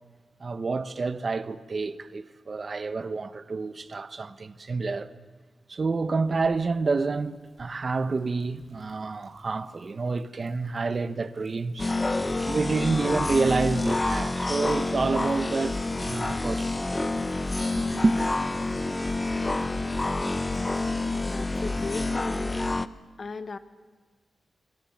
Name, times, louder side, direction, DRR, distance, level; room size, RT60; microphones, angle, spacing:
voice 1, 0.4-5.1 5.7-11.9 12.4-17.1 17.9-18.2, right 4 dB, 45° right, 1.0 m, -28 dB
Thunder, 6.2-22.1, right 3 dB, 65° right, 7.0 m, -58 dB
sound 1, 11.8-22.9, left 2 dB, 20° left, 0.8 m, -28 dB
voice 2, 21.2-22.7 23.2-23.6, left 4 dB, 50° left, 1.4 m, -36 dB
25.5 x 25.0 x 7.4 m
wide cardioid pair, 105°, 0 cm